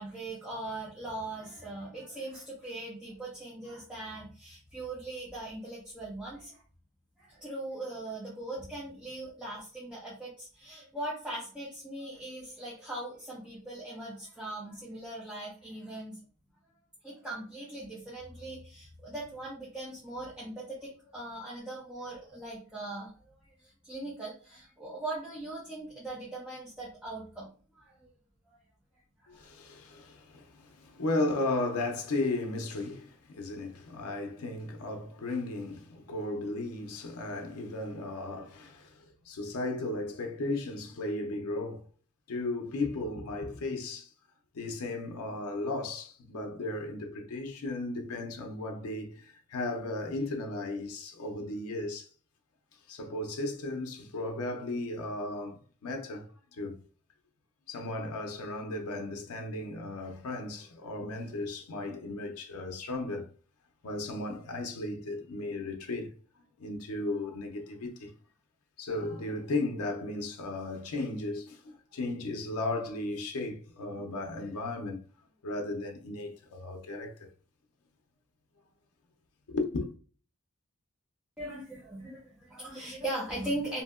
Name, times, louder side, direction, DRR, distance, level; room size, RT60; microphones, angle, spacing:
voice 1, 0.0-6.6 7.2-16.2 17.0-23.1 23.8-27.5 27.8-28.1 28.5-28.6 29.2-29.5 81.4-83.8, right 2 dB, 5° right, 0.6 m, -40 dB
voice 2, 29.3-41.9 42.3-44.1 44.5-52.1 52.9-56.8 57.7-63.3 63.8-66.1 66.6-68.1 68.8-75.0 75.4-77.3 79.5-79.9, left 2 dB, 85° left, 0.5 m, -35 dB
2.7 x 2.7 x 2.3 m
head